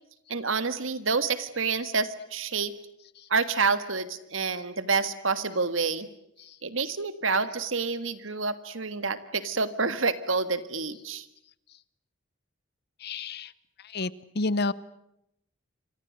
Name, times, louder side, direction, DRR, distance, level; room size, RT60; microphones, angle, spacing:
voice 1, 0.3-2.7 3.3-6.1 6.6-11.3, right 4 dB, 75° right, 12 dB, 1.8 m, -28 dB
voice 2, 13.0-13.5 13.8-14.7, left 3 dB, 50° left, 18 dB, 0.9 m, -30 dB
28.5 x 25.0 x 6.5 m, 0.80 s
head